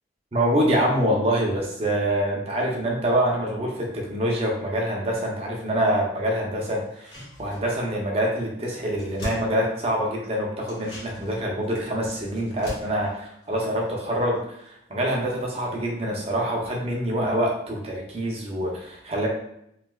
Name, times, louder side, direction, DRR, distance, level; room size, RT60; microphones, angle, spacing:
voice 1, 0.3-14.4 14.6-19.3, right 1 dB, 30° right, -1 dB, 0.5 m, -25 dB
sound 1, 6.8-8.0 8.3-8.4 8.7-10.2 10.6-14.4 14.7-14.8, equal, 70° left, 1.4 m, -41 dB
3.2 x 2.7 x 2.2 m, 0.75 s
head